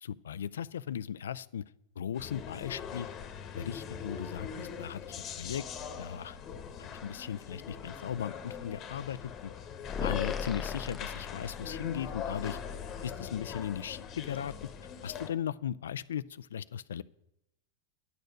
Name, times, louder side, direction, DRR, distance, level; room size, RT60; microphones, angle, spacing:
voice 1, 0.0-1.6 2.0-3.1 3.5-5.0 5.4-5.6 6.0-6.4 6.8-9.5 10.0-12.6 13.0-14.5 15.0-17.0, left 9 dB, 85° left, 18 dB, 0.3 m, -37 dB
sound 1, 2.1-15.3, left 7 dB, 35° left, 1.2 m, -41 dB
sound 2, 9.9-12.0, left 6 dB, 20° left, 0.7 m, -38 dB
10.5 x 6.7 x 6.5 m, 0.86 s
hypercardioid pair, 120°, 0 cm